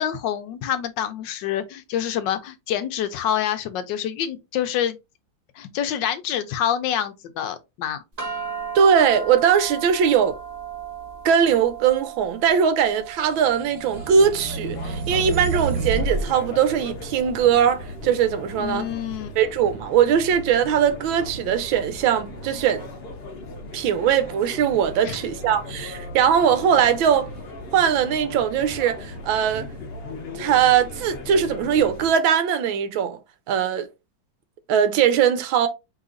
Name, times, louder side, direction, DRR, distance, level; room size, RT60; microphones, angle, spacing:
voice 1, 0.0-5.0 5.6-8.0 18.6-19.3 25.0-25.2, left 10 dB, 75° left, 1.2 m, -27 dB
sound 1, 8.2-18.7, right 6 dB, 30° right, 0.7 m, -37 dB
voice 2, 8.7-10.4 11.2-18.9 19.4-22.9 23.7-27.3 27.7-29.7 30.3-33.2 33.5-33.9 34.7-35.7, right 8 dB, 85° right, 1.5 m, -20 dB
sound 2, 13.3-16.3, right 4 dB, 65° right, 1.3 m, -28 dB
sound 3, 13.9-32.1, left 2 dB, 50° left, 0.7 m, -37 dB
4.8 x 3.4 x 2.5 m
omnidirectional pair, 2.1 m